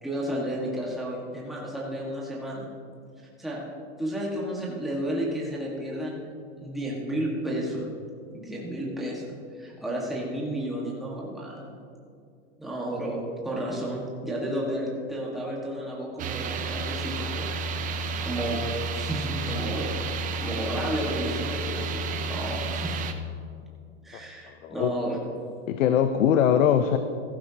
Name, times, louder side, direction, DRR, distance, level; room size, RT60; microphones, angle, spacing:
voice 1, 0.0-2.7 3.4-3.6 4.0-6.2 6.6-7.9 8.3-9.2 9.5-11.8 12.6-17.5 18.2-18.6 18.9-23.0 24.0-25.2, right 1 dB, ahead, -4 dB, 1.6 m, -32 dB
sound 1, 16.2-23.1, right 3 dB, 20° right, 0.6 m, -31 dB
voice 2, 24.1-25.0 25.7-27.0, left 9 dB, 75° left, 9 dB, 0.7 m, -22 dB
14.5 x 13.0 x 2.9 m, 2.4 s
supercardioid pair, 130°, 39 cm